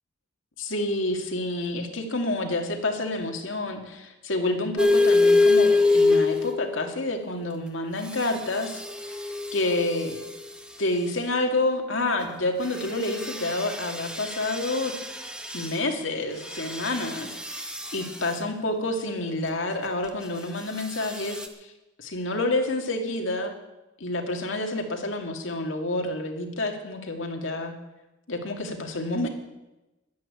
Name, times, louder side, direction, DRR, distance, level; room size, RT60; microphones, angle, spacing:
voice 1, 0.6-8.8 9.5-10.2 10.8-14.9 15.5-21.7 22.0-23.5 24.0-27.7 28.3-29.3, left 2 dB, 70° left, 4 dB, 2.1 m, -28 dB
sound 1, 4.8-6.9 8.0-10.5 12.6-15.8 16.4-18.4 20.8-21.5, left 3 dB, 5° right, 1.1 m, -25 dB
11.5 x 10.5 x 8.6 m, 1.0 s
head